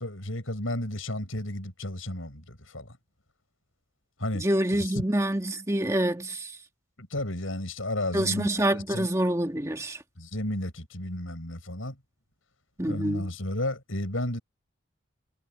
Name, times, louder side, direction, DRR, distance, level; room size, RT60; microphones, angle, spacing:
voice 1, 0.0-3.0 4.2-4.4 4.7-5.0 7.0-9.1 10.2-12.0 12.9-14.4, left 1 dB, 80° left, 7.2 m, -33 dB
voice 2, 4.4-6.5 8.1-10.0 12.8-13.2, right 1 dB, 15° right, 1.7 m, -26 dB
head